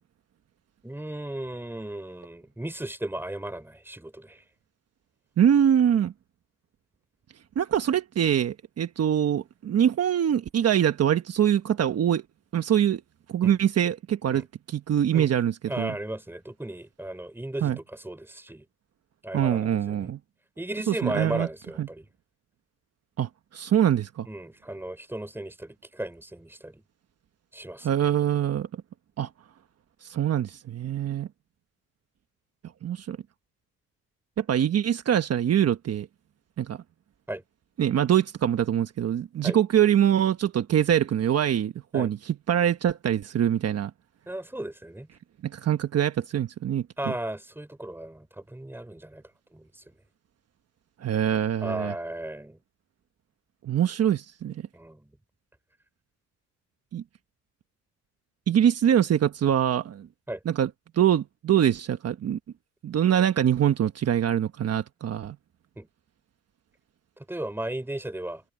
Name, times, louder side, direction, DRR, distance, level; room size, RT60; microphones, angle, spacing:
voice 1, 0.8-4.4 13.4-13.6 14.3-14.4 15.1-15.3 15.7-18.6 19.2-20.1 20.6-22.1 24.3-26.8 27.5-27.9 37.3-37.4 39.4-39.6 41.9-42.1 44.3-45.1 47.0-49.2 49.5-49.7 51.6-52.6 54.7-55.0 60.3-60.4 65.8-65.9 67.3-68.4, right 1 dB, 5° right, 3.7 m, -35 dB
voice 2, 5.4-6.1 7.6-12.2 12.5-13.0 13.3-15.9 17.6-17.8 19.3-20.2 20.9-21.5 21.8-21.9 23.2-24.3 27.8-28.7 29.2-29.3 30.0-31.3 32.8-33.2 34.4-36.1 36.6-36.8 37.8-43.9 45.4-47.1 51.0-51.9 53.6-54.6 56.9-57.0 58.5-60.1 60.4-60.7 61.0-62.4 62.8-65.4, right 10 dB, 55° right, 1.2 m, -24 dB
cardioid pair, 90°, 30 cm